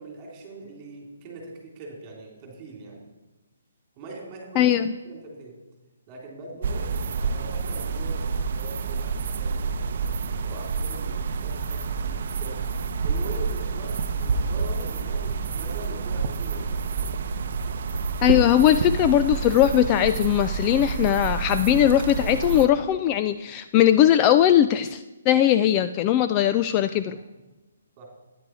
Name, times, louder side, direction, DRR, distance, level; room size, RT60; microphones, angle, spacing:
voice 1, 0.0-3.1 3.9-4.7 5.0-5.6 6.1-9.9 10.4-12.7 13.0-17.1 26.3-26.4 27.1-27.2 28.0-28.1, right 2 dB, 25° right, -1 dB, 3.7 m, -42 dB
voice 2, 4.6-4.9 18.2-27.2, left 11 dB, 25° left, 11 dB, 0.3 m, -20 dB
sound 1, 6.6-22.7, right 5 dB, 50° right, 0.7 m, -28 dB
12.5 x 9.7 x 4.8 m, 1.1 s
hypercardioid pair, 160°, 0 cm